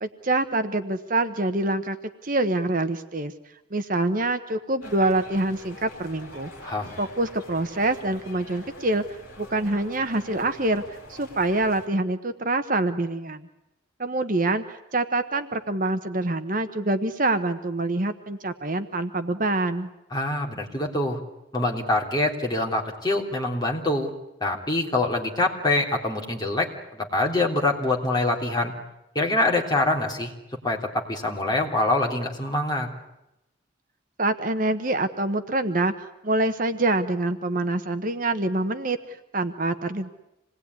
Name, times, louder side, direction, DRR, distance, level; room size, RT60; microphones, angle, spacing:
voice 1, 0.0-2.0 2.2-3.3 3.7-6.5 7.0-9.0 9.4-13.5 14.0-19.9 34.2-40.1, right 2 dB, 40° right, 8 dB, 1.1 m, -25 dB
sound 1, 4.8-11.9, left 2 dB, 40° left, 5.4 m, -45 dB
voice 2, 6.6-6.9 20.1-21.2 21.5-24.1 24.4-28.7 29.1-30.3 30.6-32.9, left 2 dB, 20° left, 0 dB, 3.3 m, -25 dB
27.0 x 20.0 x 9.6 m, 0.91 s
head